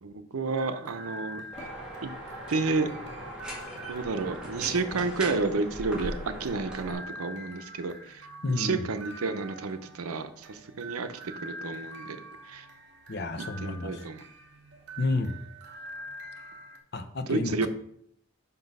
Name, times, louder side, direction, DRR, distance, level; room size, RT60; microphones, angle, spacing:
voice 1, 0.0-1.4 2.0-2.1 2.5-2.9 3.9-12.2 12.4-12.7 13.6-14.3 17.3-17.7, right 3 dB, 85° right, 10 dB, 0.7 m, -31 dB
sound 1, 0.6-16.8, right 1 dB, 55° right, 1.0 m, -46 dB
sound 2, 1.5-6.9, equal, 5° right, 1.7 m, -39 dB
voice 2, 8.4-8.8 13.1-14.0 15.0-15.4 16.9-17.7, left 2 dB, 50° left, 8 dB, 0.7 m, -30 dB
6.1 x 5.5 x 5.4 m, 0.68 s
head